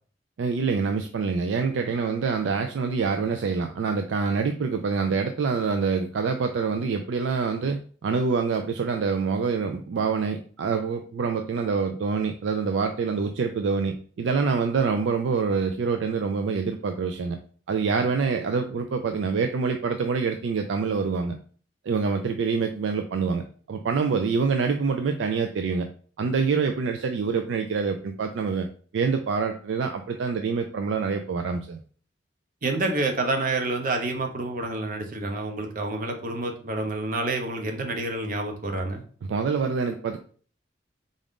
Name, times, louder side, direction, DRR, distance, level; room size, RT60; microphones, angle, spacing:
voice 1, 0.4-17.4 17.7-21.3 21.9-23.4 23.7-25.9 26.2-28.7 28.9-31.8 39.3-40.2, right 5 dB, 90° right, 5 dB, 0.4 m, -26 dB
voice 2, 32.6-39.0, right 2 dB, 50° right, 4 dB, 0.7 m, -28 dB
3.7 x 2.5 x 3.5 m, 0.43 s
head